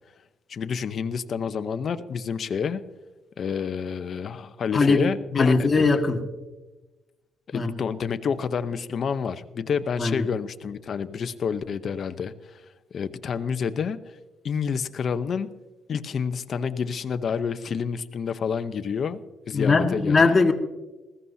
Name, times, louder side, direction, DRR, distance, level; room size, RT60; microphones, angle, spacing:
voice 1, 0.5-2.8 3.4-5.9 7.5-12.3 12.9-14.0 14.4-15.5 15.9-19.2 19.5-20.4, left 6 dB, 55° left, 11 dB, 0.8 m, -28 dB
voice 2, 4.7-5.0 5.4-6.2 7.5-7.7 10.0-10.2 19.5-20.5, left 4 dB, 30° left, 3 dB, 1.7 m, -20 dB
20.0 x 15.5 x 2.8 m, 1.1 s
cardioid pair, 90°, 0 cm